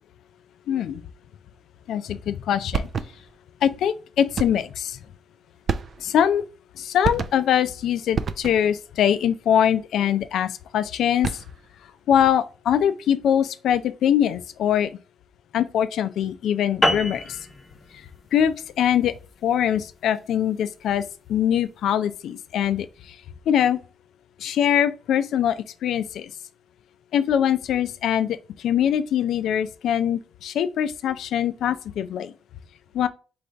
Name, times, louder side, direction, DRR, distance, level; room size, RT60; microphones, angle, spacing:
voice 1, 0.7-1.0 1.9-2.9 3.6-5.0 6.0-6.4 6.8-11.4 12.1-14.9 15.5-17.4 18.3-19.1 19.4-21.0 21.3-23.2 23.5-23.8 24.4-26.3 27.1-32.3 32.9-33.1, left 9 dB, 75° left, 0.4 m, -23 dB
sound 1, 2.7-3.4 4.4-4.8 5.7-6.3 7.0-7.6 8.1-8.8 11.0-11.7, right 6 dB, 50° right, 0.3 m, -29 dB
sound 2, 16.8-21.6, left 1 dB, 20° left, 0.7 m, -29 dB
3.9 x 3.3 x 3.4 m
cardioid pair, 90°, 0 cm